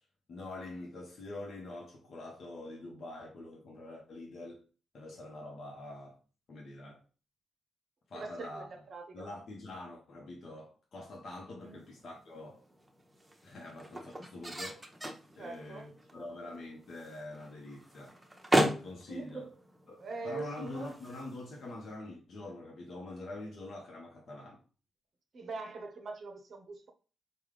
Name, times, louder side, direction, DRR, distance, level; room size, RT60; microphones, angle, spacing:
voice 1, 0.3-4.6 4.9-6.2 6.5-7.0 8.1-8.7 9.1-12.6 13.4-14.8 15.4-18.2 18.8-19.5 19.9-24.6, left 2 dB, 55° left, 0.8 m, -45 dB
voice 2, 8.1-9.3 11.6-11.8 15.4-15.9 16.1-16.6 19.1-19.5 20.0-20.9 25.3-26.9, right 3 dB, 55° right, 0.6 m, -43 dB
sound 1, 11.6-22.0, right 1 dB, 15° right, 0.7 m, -37 dB
3.4 x 2.2 x 3.3 m
hypercardioid pair, 40°, 0 cm